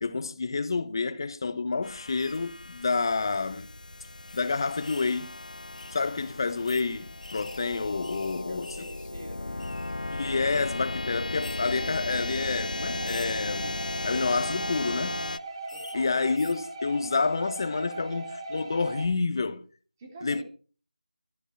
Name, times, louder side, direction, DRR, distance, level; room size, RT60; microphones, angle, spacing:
voice 1, 0.0-3.7 4.3-5.3 5.9-8.7 10.1-15.3 15.9-19.6 20.2-20.4, left 4 dB, 35° left, 1.0 m, -29 dB
sound 1, 1.8-15.4, left 2 dB, 70° left, 0.8 m, -36 dB
sound 2, 2.2-2.4 3.2-3.3 3.6-3.7 4.3-4.4 4.8-5.2 5.8-6.0 6.7-6.9 7.2-9.1 9.3-9.9 10.5-10.7 11.4-11.6 12.2-12.4 13.0-13.4 14.5-14.8 15.7-16.0 16.3-16.6, left 2 dB, 55° left, 1.7 m, -47 dB
voice 2, 8.2-9.8 15.7-16.2 20.0-20.4, right 1 dB, 20° right, 2.5 m, -46 dB
sound 3, 11.7-19.0, right 2 dB, 40° right, 3.9 m, -39 dB
13.0 x 13.0 x 4.8 m
figure-of-eight pair, 170°, 4 cm